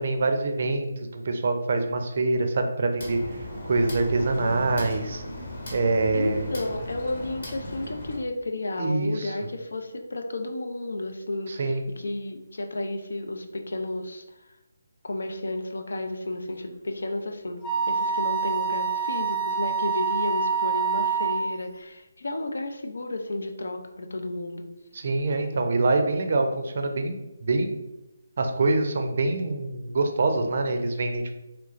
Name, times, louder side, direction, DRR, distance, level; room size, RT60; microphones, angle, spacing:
voice 1, 0.0-3.2 3.6-5.2 5.7-6.5 8.8-9.3 11.5-11.8 24.9-27.7 28.4-31.4, right 3 dB, 50° right, 5 dB, 0.4 m, -25 dB
sound 1, 3.0-8.2, left 1 dB, 50° left, 1.0 m, -37 dB
voice 2, 6.1-14.2 15.0-24.7, left 2 dB, 80° left, 5 dB, 0.5 m, -32 dB
Wind instrument woodwind instrument, 17.6-21.5, right 6 dB, 15° left, 0.4 m, -26 dB
3.1 x 3.0 x 2.4 m, 0.97 s
hypercardioid pair, 170°, 0 cm